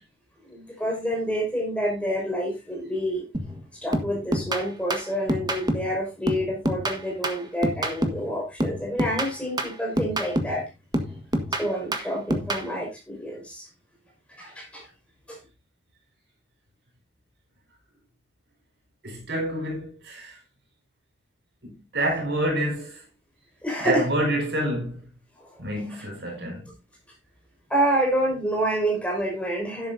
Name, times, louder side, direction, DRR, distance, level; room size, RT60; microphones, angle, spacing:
voice 1, 0.5-3.3 3.8-10.7 11.5-13.7 14.4-14.9 15.3-15.4 23.6-24.1 25.4-25.9 27.7-29.9, equal, 5° left, 5.6 m, -28 dB
sound 1, 3.3-3.6 3.9-6.0 6.3-8.3 8.6-10.6 10.9-12.7, right 1 dB, 20° right, 1.6 m, -27 dB
voice 2, 19.0-20.4 21.6-23.0 23.8-25.0 25.6-26.7, right 1 dB, 65° right, 5.5 m, -28 dB
12.5 x 11.0 x 2.7 m
head